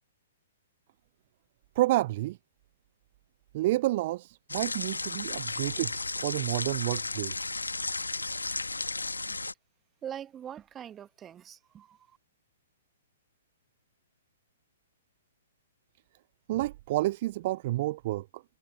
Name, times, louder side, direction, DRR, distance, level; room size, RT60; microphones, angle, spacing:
voice 1, 1.8-2.4 3.5-7.5 16.5-18.4, right 17 dB, 45° right, 0.3 m, -30 dB
sound 1, 4.5-9.5, left 3 dB, 85° left, 1.9 m, -34 dB
voice 2, 10.0-12.2, right 9 dB, 20° right, 1.6 m, -43 dB
figure-of-eight pair, 115°, 0 cm